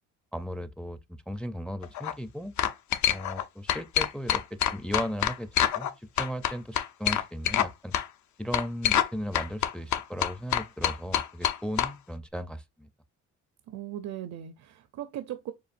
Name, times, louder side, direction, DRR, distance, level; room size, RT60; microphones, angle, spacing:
voice 1, 0.3-1.0 1.3-2.5 3.1-5.5 5.7-7.9 8.4-12.9, equal, 5° left, 0.4 m, -36 dB
sound 1, 1.8-2.1 2.6-3.4 3.7-5.9 6.2-7.7 7.9-8.1 8.5-9.1 9.3-11.9, left 10 dB, 70° left, 0.6 m, -26 dB
voice 2, 13.7-15.5, right 11 dB, 65° right, 0.6 m, -38 dB
6.9 x 2.6 x 2.5 m
cardioid pair, 90°, 30 cm